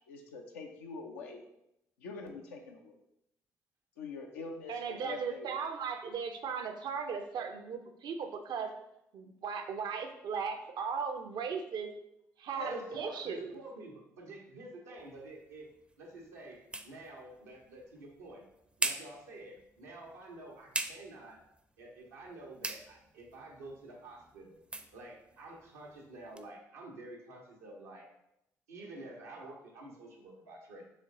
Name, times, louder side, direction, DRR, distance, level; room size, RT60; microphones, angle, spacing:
voice 1, 0.1-1.4 2.0-2.9 4.0-5.5, left 4 dB, 85° left, 2 dB, 0.6 m, -44 dB
voice 2, 4.7-8.8 9.1-11.9 12.4-13.5, right 6 dB, 60° right, 6 dB, 0.6 m, -37 dB
voice 3, 12.5-15.7 16.0-18.4 18.8-21.4 21.8-24.6 24.9-28.1 28.7-30.8, right 2 dB, 90° right, -2 dB, 0.9 m, -48 dB
sound 1, 15.0-26.5, right 2 dB, 15° right, 0.5 m, -44 dB
4.3 x 3.1 x 3.7 m, 0.82 s
hypercardioid pair, 45°, 8 cm